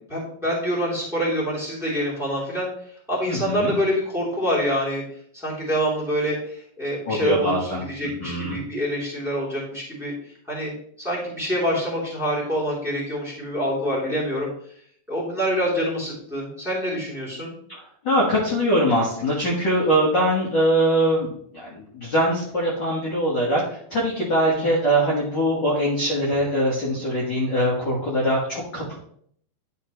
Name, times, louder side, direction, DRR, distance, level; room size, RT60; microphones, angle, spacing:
voice 1, 0.1-2.7 3.1-5.0 5.3-10.1 10.5-10.7 11.0-14.5 15.1-17.6 24.5-24.8, equal, ahead, -6 dB, 2.5 m, -26 dB
voice 2, 3.3-3.7 7.1-7.8 8.2-8.6 17.7-17.8 18.0-28.9, equal, 45° left, -5 dB, 1.6 m, -22 dB
11.0 x 5.0 x 3.1 m, 0.63 s
omnidirectional pair, 4.2 m